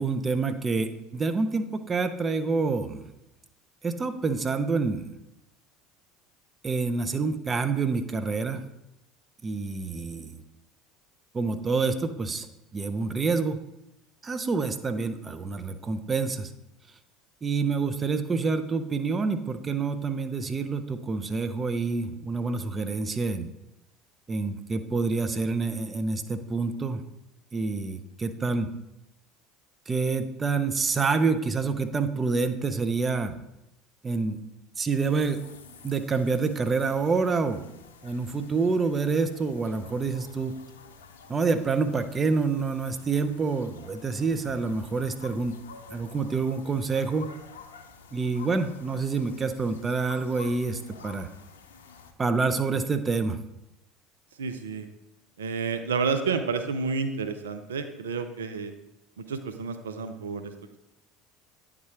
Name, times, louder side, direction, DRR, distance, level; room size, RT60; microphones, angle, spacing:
voice 1, 0.0-3.1 3.8-5.1 6.6-8.6 9.4-10.4 11.3-12.5 12.7-13.6 14.2-16.5 17.4-23.5 24.3-27.0 27.5-28.7 29.9-33.4 34.0-34.4 34.8-35.4 35.8-37.7 38.0-40.5 41.3-45.6 45.9-47.3 48.1-51.3 52.2-53.4, right 4 dB, 25° right, 9 dB, 0.6 m, -27 dB
sound 1, 34.9-52.1, left 5 dB, 85° left, 0.6 m, -50 dB
voice 2, 54.4-54.9 55.4-58.7 59.2-60.5, right 5 dB, 85° right, 8 dB, 0.5 m, -30 dB
9.4 x 3.7 x 4.4 m, 0.89 s
hypercardioid pair, 70°, 0 cm